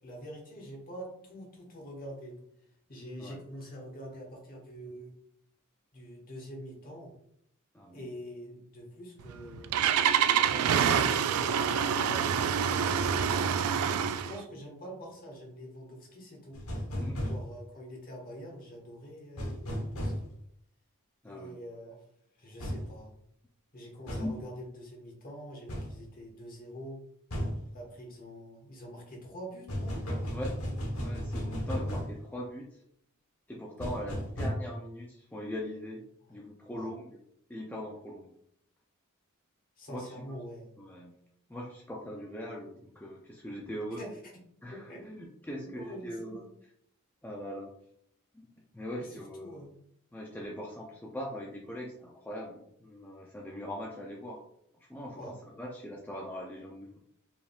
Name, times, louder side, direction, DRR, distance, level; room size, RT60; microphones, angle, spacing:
voice 1, 0.0-2.3 2.9-5.1 5.9-7.1 7.9-9.8 10.4-13.8 14.3-16.6 17.2-20.3 21.2-22.0 22.4-23.1 23.7-27.0 27.7-30.0 36.7-36.9 39.8-40.7 44.0-44.2 44.7-45.1 45.6-46.4 49.0-49.8 55.2-55.3, equal, 40° left, 0 dB, 1.3 m, -45 dB
voice 2, 7.7-8.1 17.0-17.2 21.2-21.6 24.2-24.3 30.3-30.5 30.8-32.8 33.5-37.2 37.5-38.4 39.9-40.2 40.8-41.2 41.5-44.0 44.6-46.4 47.2-47.7 48.3-49.6 50.1-54.4 54.9-57.0, equal, 10° left, -2 dB, 0.4 m, -41 dB
Engine starting, 9.2-14.4, right 8 dB, 85° right, 0.3 m, -26 dB
sound 1, 16.5-17.4 19.4-20.2 22.6-22.8 24.1-24.3 25.7-25.9 27.3-27.6 29.7-32.1 33.8-34.5, equal, 75° left, 1.1 m, -34 dB
4.7 x 3.5 x 2.3 m, 0.70 s
head